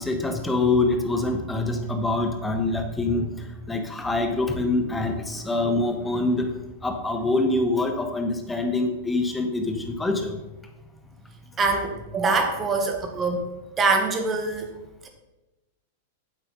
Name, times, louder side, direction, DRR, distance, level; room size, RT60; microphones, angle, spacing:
voice 1, 0.0-6.5 6.8-10.4, left 2 dB, 10° left, 4 dB, 1.5 m, -25 dB
voice 2, 11.6-13.4 13.8-14.7 15.0-15.1, right 3 dB, 25° right, 4 dB, 1.8 m, -24 dB
9.4 x 8.1 x 4.1 m, 1.1 s
figure-of-eight pair, 95°, 0 cm